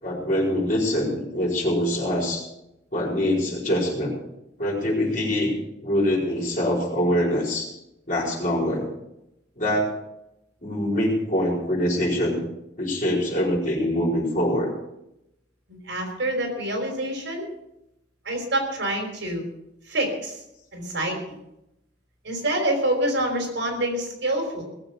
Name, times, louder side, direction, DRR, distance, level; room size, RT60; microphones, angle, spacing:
voice 1, 0.0-2.5 2.9-4.1 4.6-5.5 5.8-7.7 8.1-8.9 9.6-10.0 10.6-12.4 12.8-14.7, equal, 45° left, -2 dB, 4.7 m, -24 dB
voice 2, 15.7-17.5 18.2-19.4 19.9-20.4 20.7-21.4 22.2-24.6, right 1 dB, 70° right, 2 dB, 4.8 m, -26 dB
19.0 x 8.0 x 6.9 m, 0.86 s
head